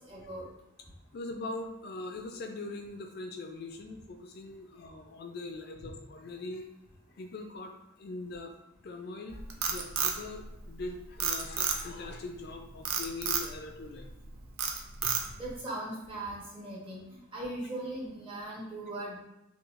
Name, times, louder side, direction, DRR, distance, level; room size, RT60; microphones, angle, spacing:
voice 1, 0.1-0.5 15.4-17.0 17.3-19.2, right 1 dB, 25° right, -5 dB, 1.0 m, -39 dB
voice 2, 1.1-6.7 7.2-7.7 8.0-8.5 8.8-14.1 15.0-15.2, left 2 dB, 50° left, 4 dB, 0.3 m, -41 dB
Frog, 9.3-10.8 11.2-12.1 12.8-13.5 14.0-14.2 14.6-15.5, right 6 dB, 80° right, 0.5 m, -30 dB
5.6 x 2.3 x 2.4 m, 0.93 s
head